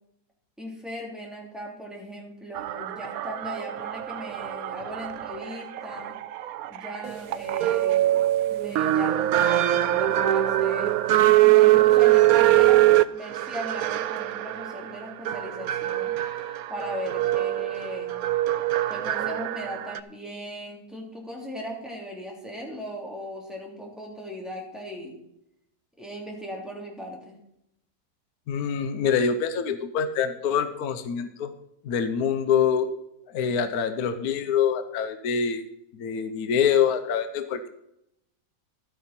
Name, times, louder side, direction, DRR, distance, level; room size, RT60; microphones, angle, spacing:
voice 1, 0.6-6.2 6.7-8.2 8.5-10.9 11.5-12.8 13.1-16.1 16.7-18.2 18.9-25.2 26.0-27.4, equal, ahead, -2 dB, 2.8 m, -38 dB
sound 1, 2.5-20.0, right 14 dB, 75° right, 0.8 m, -23 dB
voice 2, 28.5-31.5 31.8-32.9 33.3-35.6 35.9-37.7, left 7 dB, 60° left, 9 dB, 1.2 m, -25 dB
12.5 x 9.4 x 4.3 m, 0.80 s
omnidirectional pair, 2.0 m